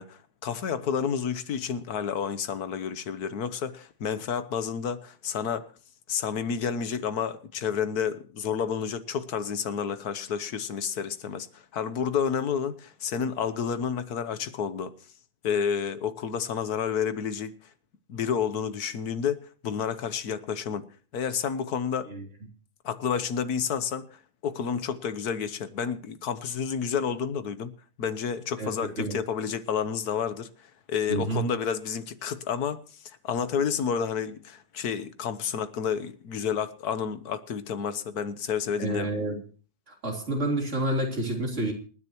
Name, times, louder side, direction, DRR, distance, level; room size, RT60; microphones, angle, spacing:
voice 1, 0.0-5.7 6.1-14.9 15.4-17.5 18.1-20.8 21.1-22.1 22.8-27.7 28.0-30.5 30.9-32.8 33.0-39.1, left 7 dB, 90° left, 1.6 m, -30 dB
voice 2, 28.6-29.2 31.1-31.5 38.8-39.4 39.9-41.7, right 1 dB, 50° right, 3.9 m, -29 dB
27.5 x 10.0 x 3.0 m
omnidirectional pair, 1.6 m